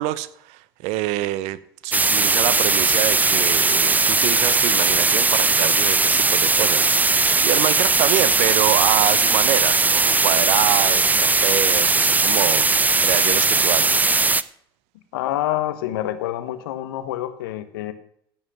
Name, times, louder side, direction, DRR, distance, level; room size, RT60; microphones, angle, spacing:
voice 1, 0.0-14.1, right 15 dB, 65° right, 0.9 m, -26 dB
sound 1, 1.9-14.4, right 3 dB, 15° right, 0.6 m, -18 dB
voice 2, 15.1-17.9, left 13 dB, 75° left, 1.2 m, -27 dB
16.0 x 5.6 x 6.0 m
hypercardioid pair, 70°, 12 cm